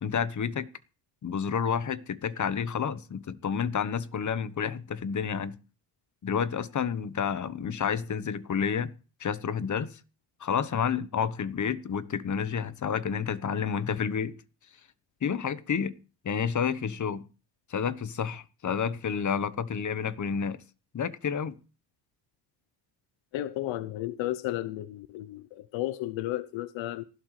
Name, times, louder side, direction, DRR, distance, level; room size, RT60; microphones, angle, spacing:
voice 1, 0.0-0.7 1.2-5.6 6.2-8.9 9.2-10.0 10.4-14.3 15.2-16.0 16.2-17.2 17.7-20.6 20.9-21.5, left 7 dB, 35° left, 1.1 m, -30 dB
voice 2, 23.3-27.1, left 15 dB, 70° left, 0.8 m, -33 dB
18.5 x 12.0 x 3.3 m
supercardioid pair, 75°, 48 cm